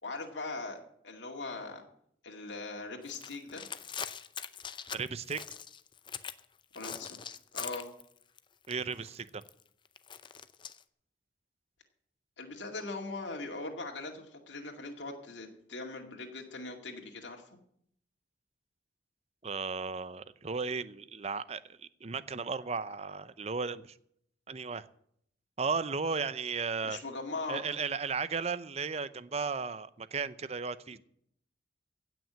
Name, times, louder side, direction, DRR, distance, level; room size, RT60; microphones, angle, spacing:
voice 1, 0.0-0.8 1.0-1.8 2.2-3.9 6.7-7.2 7.5-7.9 12.4-17.6 26.8-27.6, left 3 dB, 85° left, 1 dB, 2.2 m, -40 dB
sound 1, 3.0-6.4 6.7-8.4 8.6-10.8, left 7 dB, 25° left, 0.6 m, -42 dB
voice 2, 4.9-5.4 8.7-9.4 19.4-24.0 24.5-24.9 25.6-27.0 27.5-31.0, right 5 dB, 35° right, 15 dB, 0.6 m, -35 dB
16.5 x 6.1 x 8.7 m, 0.69 s
head